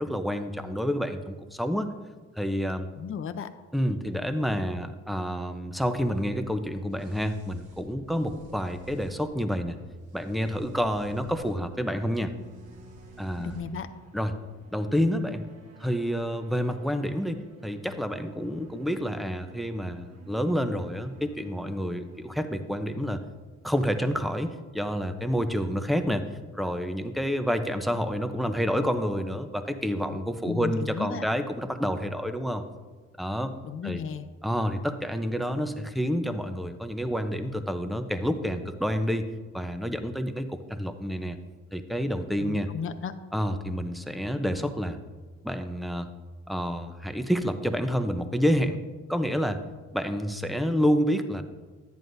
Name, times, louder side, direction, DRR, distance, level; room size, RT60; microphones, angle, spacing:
voice 1, 0.0-1.9 2.4-2.9 3.7-9.8 10.1-12.3 13.2-13.5 14.1-14.4 14.7-15.4 15.8-23.2 23.6-26.2 26.5-32.6 33.2-33.5 33.8-34.0 34.4-39.3 39.5-41.4 41.7-42.7 43.3-45.0 45.4-46.1 46.5-48.8 49.1-49.6 49.9-51.4, equal, ahead, 8 dB, 0.7 m, -28 dB
voice 2, 3.0-3.5 13.4-13.9 30.4-31.2 33.6-34.3 42.4-43.1, left 6 dB, 45° left, 10 dB, 0.6 m, -34 dB
sound 1, 6.1-13.6, right 1 dB, 85° right, 1.1 m, -51 dB
sound 2, 11.5-23.9, right 3 dB, 55° right, 1.5 m, -53 dB
10.5 x 9.3 x 2.6 m, 1.3 s
cardioid pair, 90°, 30 cm